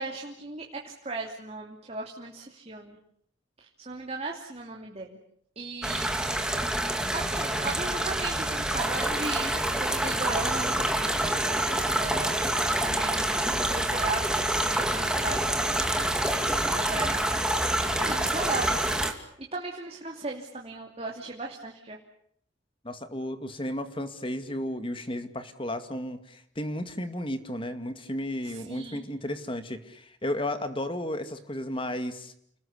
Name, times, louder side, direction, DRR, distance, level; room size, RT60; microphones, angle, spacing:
voice 1, 0.0-3.0 3.6-5.2 5.6-6.1 6.4-9.5 9.8-12.3 12.8-16.2 16.5-17.5 18.0-19.0 19.4-22.0 28.4-29.0, right 3 dB, 35° right, 0 dB, 2.9 m, -37 dB
sound 1, 5.8-19.1, right 1 dB, 5° right, 2.4 m, -27 dB
voice 2, 22.8-32.3, left 1 dB, 25° left, 9 dB, 2.2 m, -33 dB
30.0 x 20.0 x 8.5 m, 0.70 s
head